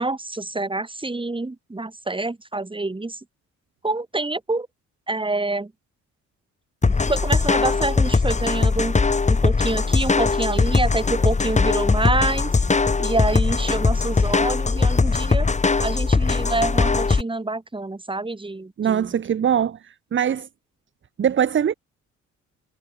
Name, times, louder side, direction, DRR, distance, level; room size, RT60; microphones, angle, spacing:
voice 1, 0.0-3.2 3.8-4.7 5.1-5.7 6.8-9.0 9.3-12.6 13.0-15.5 15.8-19.1, right 2 dB, 15° right, 6.5 m, -27 dB
sound 1, 6.8-17.2, left 4 dB, 25° left, 1.8 m, -20 dB
voice 2, 18.8-20.5 21.2-21.7, right 8 dB, 40° right, 0.9 m, -22 dB
cardioid pair, 90°, 30 cm